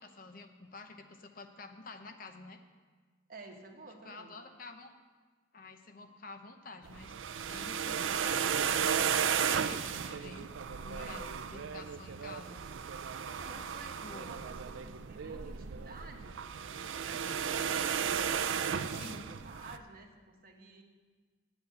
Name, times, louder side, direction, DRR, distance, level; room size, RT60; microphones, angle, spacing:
voice 1, 0.0-2.6 4.0-4.9 5.5-7.1 7.5-8.9 9.2-10.5 10.8-11.2 11.5-12.6 13.8-14.4 18.9-19.3, left 3 dB, 45° left, 6 dB, 0.7 m, -49 dB
voice 2, 3.3-4.3 11.0-11.4 13.1-16.4 17.0-18.0 18.3-20.8, right 2 dB, 45° right, 3 dB, 1.2 m, -51 dB
sound 1, 6.9-19.8, right 7 dB, 80° right, 0.5 m, -34 dB
8.7 x 8.1 x 8.1 m, 1.5 s
head